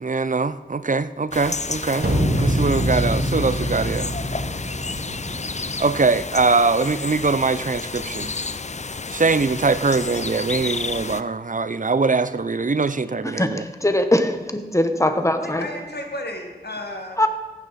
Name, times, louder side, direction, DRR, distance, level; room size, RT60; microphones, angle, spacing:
voice 1, 0.0-2.1 2.4-4.1 5.8-8.3 9.1-13.6, right 4 dB, 50° right, 14 dB, 0.5 m, -22 dB
sound 1, 1.3-11.2, left 4 dB, 45° left, 0.5 m, -31 dB
sound 2, 2.0-6.0, equal, 70° right, 2.1 m, -24 dB
voice 2, 13.2-15.7 17.2-17.3, left 1 dB, 20° left, 8 dB, 1.0 m, -21 dB
voice 3, 14.9-17.2, left 1 dB, 80° left, 3 dB, 1.7 m, -34 dB
15.0 x 10.0 x 4.1 m, 1.3 s
wide cardioid pair, 40°, 17 cm